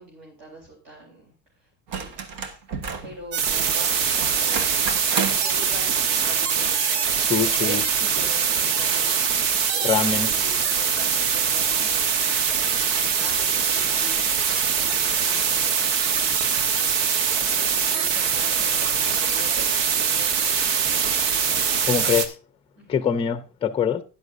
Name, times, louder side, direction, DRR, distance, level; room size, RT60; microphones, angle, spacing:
voice 1, 0.0-1.3 1.9-2.6 3.0-4.7 5.4-9.8 10.2-12.1 12.7-14.3 14.8-15.9 17.5-21.1 22.8-23.1, right 1 dB, 45° right, 4.1 m, -42 dB
sound 1, 1.9-3.2 4.1-5.5 7.1-7.2, right 6 dB, 65° right, 1.6 m, -31 dB
sound 2, 3.3-22.3, right 7 dB, 80° right, 1.4 m, -23 dB
voice 2, 7.1-7.8 9.8-10.3 21.9-22.4 22.9-24.0, left 7 dB, 15° left, 0.6 m, -24 dB
12.5 x 10.5 x 2.7 m
supercardioid pair, 125°, 44 cm